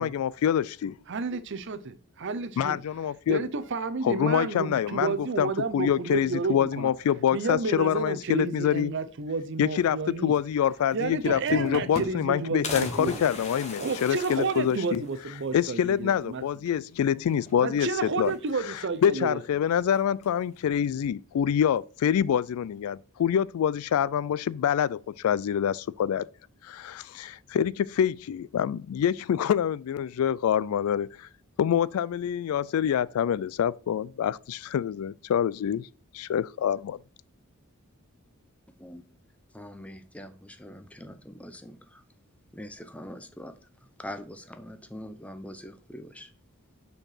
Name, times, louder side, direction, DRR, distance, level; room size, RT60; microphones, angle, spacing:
voice 1, 0.0-1.0 2.6-3.5 4.0-9.0 9.6-15.0 15.5-17.9 18.2-18.3 18.7-26.2 26.6-31.3 31.6-35.9 36.1-37.0, left 9 dB, 80° left, 0.3 m, -26 dB
voice 2, 1.1-2.8 3.3-6.9 7.3-10.3 10.9-13.2 13.8-16.4 17.6-19.4, right 4 dB, 55° right, 0.6 m, -31 dB
sound 1, 10.7-10.8 11.0-12.3 12.6-15.2 15.7-15.8 16.0-16.1 17.3-17.7 18.1-18.8 19.9-20.5, left 2 dB, 30° left, 1.1 m, -39 dB
voice 3, 38.7-39.0 39.5-42.0 42.5-43.6 44.0-46.3, left 1 dB, 5° left, 0.6 m, -43 dB
5.3 x 4.4 x 5.5 m
head